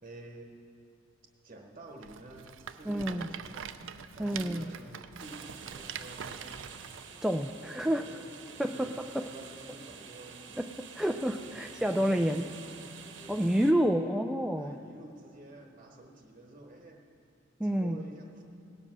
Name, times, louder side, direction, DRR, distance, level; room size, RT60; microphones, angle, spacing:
voice 1, 0.0-0.7 1.4-3.8 4.1-6.9 7.6-10.6 11.4-12.7 13.2-13.9 14.6-17.0 17.6-18.4, right 2 dB, 35° right, 1 dB, 1.1 m, -50 dB
Rattle, 2.0-7.1, right 7 dB, 90° right, 0.5 m, -44 dB
voice 2, 2.9-3.3 4.2-4.6 7.2-8.0 8.6-8.9 10.6-10.7 11.0-12.4 13.3-14.7 17.6-18.0, equal, 5° right, 4 dB, 0.3 m, -28 dB
sound 1, 5.2-13.7, right 6 dB, 70° right, 1.0 m, -48 dB
17.5 x 7.7 x 6.1 m, 2.7 s
head